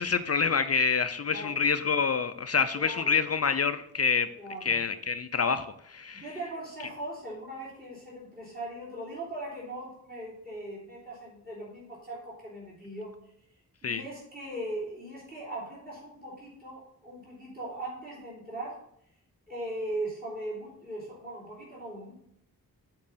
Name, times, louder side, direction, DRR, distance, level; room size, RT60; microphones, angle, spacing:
voice 1, 0.0-4.3 4.6-6.2 13.8-14.0, left 5 dB, 40° left, 10 dB, 0.4 m, -27 dB
voice 2, 1.3-1.6 2.8-3.1 4.4-4.8 6.1-13.1 13.8-18.8 19.5-22.1, right 1 dB, 25° right, -7 dB, 3.3 m, -39 dB
7.5 x 4.7 x 5.6 m, 0.71 s
wide cardioid pair, 145°, 37 cm